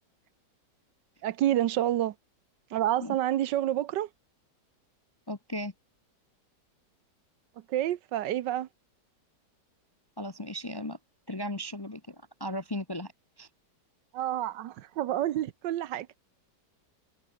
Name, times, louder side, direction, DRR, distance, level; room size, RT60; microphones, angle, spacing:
voice 1, 1.2-2.1 2.7-4.1 7.7-8.7 14.1-16.1, right 12 dB, 80° right, 1.5 m, -28 dB
voice 2, 5.3-5.7 10.2-11.0 11.3-13.1 13.4-13.5, left 1 dB, 20° left, 0.7 m, -36 dB
omnidirectional pair, 1.9 m